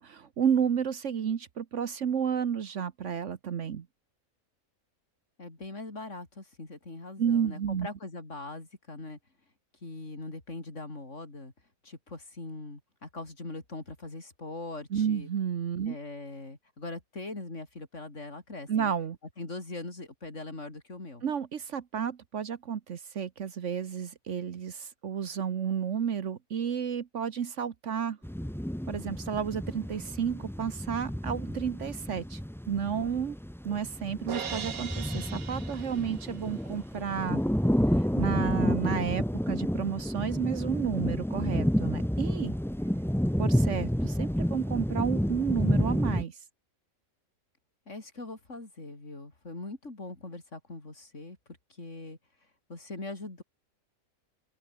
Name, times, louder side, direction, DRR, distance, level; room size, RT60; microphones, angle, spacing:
voice 1, 0.0-3.9 7.2-7.9 14.9-16.0 18.7-19.2 21.2-28.2 28.9-32.4 32.7-33.4 33.6-37.4 38.0-42.6 43.4-46.4, right 7 dB, 60° right, 1.3 m, -31 dB
voice 2, 5.4-9.2 9.8-11.5 11.8-15.3 15.9-18.9 19.4-21.2 47.9-51.4 51.8-52.2 52.7-53.4, left 2 dB, 55° left, 4.5 m, -41 dB
sound 1, 28.2-46.2, equal, ahead, 1.0 m, -30 dB
Crash cymbal, 34.3-36.5, right 7 dB, 75° right, 1.9 m, -39 dB
open air
omnidirectional pair, 1.5 m